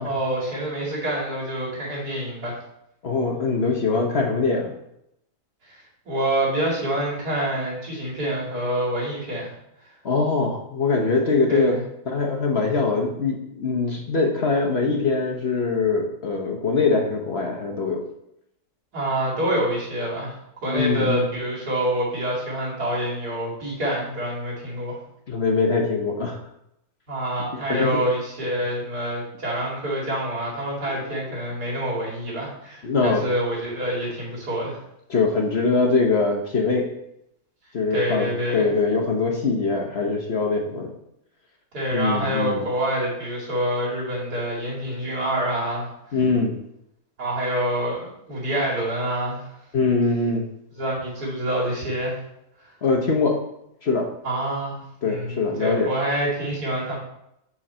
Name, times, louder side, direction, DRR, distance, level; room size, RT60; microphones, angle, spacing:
voice 1, 0.0-2.5 5.7-5.8 6.0-9.5 11.5-11.8 18.9-20.3 20.6-25.0 27.1-34.8 37.9-38.7 41.7-45.9 47.2-49.5 50.8-52.2 54.2-57.0, right 1 dB, 85° right, -5 dB, 3.0 m, -26 dB
voice 2, 3.0-4.8 10.0-11.8 12.1-18.0 20.7-21.3 25.3-26.4 27.7-28.0 30.9-31.4 32.8-33.3 35.1-36.9 37.7-40.9 41.9-42.6 46.1-46.6 49.7-50.4 52.8-53.4 53.8-54.1 55.0-55.9, left 4 dB, 45° left, 1 dB, 1.1 m, -23 dB
7.6 x 4.8 x 4.3 m, 0.79 s
omnidirectional pair, 1.6 m